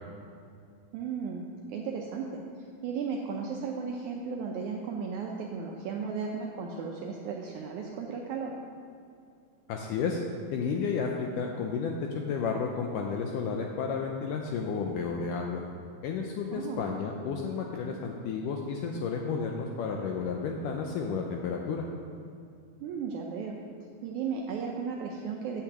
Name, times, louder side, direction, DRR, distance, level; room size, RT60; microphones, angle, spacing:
voice 1, 0.9-2.4 2.8-8.5 16.5-16.8 22.8-23.6 24.0-25.6, right 5 dB, 90° right, 0 dB, 1.7 m, -35 dB
voice 2, 9.7-10.2 10.5-15.6 16.0-21.9, left 5 dB, 80° left, 1 dB, 1.9 m, -32 dB
8.4 x 5.9 x 7.9 m, 2.4 s
omnidirectional pair, 4.3 m